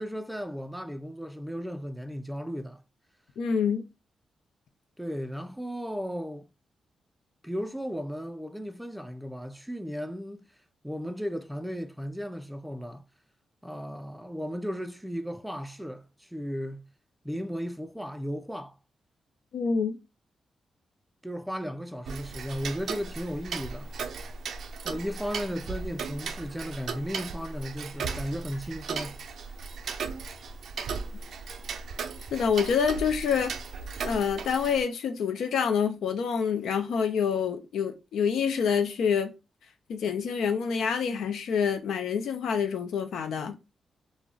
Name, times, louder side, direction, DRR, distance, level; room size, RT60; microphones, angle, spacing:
voice 1, 0.0-2.8 5.0-6.5 7.4-10.4 10.8-13.0 13.6-16.9 17.2-18.8 21.2-23.9 24.8-29.2, equal, 5° right, 0.4 m, -35 dB
voice 2, 3.4-3.8 19.5-20.0 32.3-33.5 34.0-39.3 39.9-43.6, left 6 dB, 80° left, 0.4 m, -27 dB
Tick-tock, 22.1-34.8, right 5 dB, 75° right, 0.3 m, -37 dB
2.3 x 2.1 x 3.7 m
cardioid pair, 60°, 0 cm